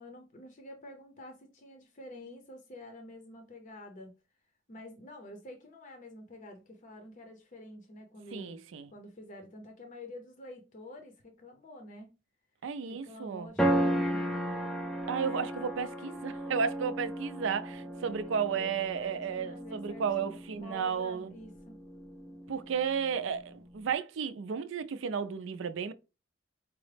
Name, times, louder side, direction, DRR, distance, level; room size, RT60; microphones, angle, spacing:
voice 1, 0.0-4.1 4.7-8.6 8.9-12.1 12.9-14.6 18.0-21.8, left 1 dB, 40° left, 0.6 m, -48 dB
voice 2, 8.3-8.9 12.6-13.5 15.1-21.3 22.5-25.9, right 6 dB, 75° right, 0.4 m, -33 dB
sound 1, 13.6-23.9, right 1 dB, 5° left, 0.4 m, -35 dB
4.6 x 2.0 x 3.2 m
head